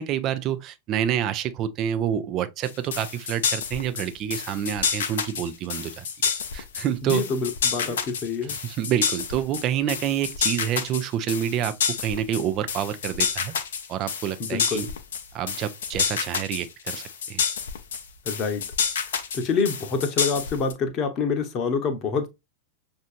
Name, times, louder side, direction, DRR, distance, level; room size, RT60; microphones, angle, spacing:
voice 1, 0.0-7.2 7.8-8.0 8.4-11.7 12.0-13.5 13.9-14.9 15.3-17.4, right 10 dB, 35° right, 0.6 m, -28 dB
sound 1, 2.6-20.7, left 6 dB, 60° left, 0.6 m, -28 dB
voice 2, 7.0-8.5 14.4-14.9 18.3-18.6 19.3-22.3, left 5 dB, 35° left, 0.9 m, -26 dB
6.1 x 2.7 x 2.5 m
figure-of-eight pair, 90°, 0 cm